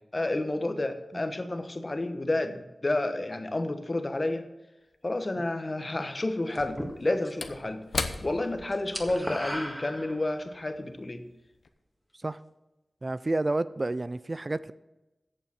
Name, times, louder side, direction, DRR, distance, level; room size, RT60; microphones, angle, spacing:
voice 1, 0.1-4.4 5.0-7.8 8.2-11.2, left 2 dB, 40° left, 8 dB, 1.1 m, -30 dB
Slam / Wood, 4.9-5.0 6.5-11.2 11.5-11.7, left 4 dB, 75° left, 0.8 m, -39 dB
sound 1, 6.5-7.5 7.8-8.2 8.4-10.5, equal, 5° right, 1.8 m, -37 dB
voice 2, 13.0-14.7, right 2 dB, 40° right, 16 dB, 0.3 m, -30 dB
8.5 x 6.9 x 7.5 m, 1.0 s
cardioid pair, 50°, 0 cm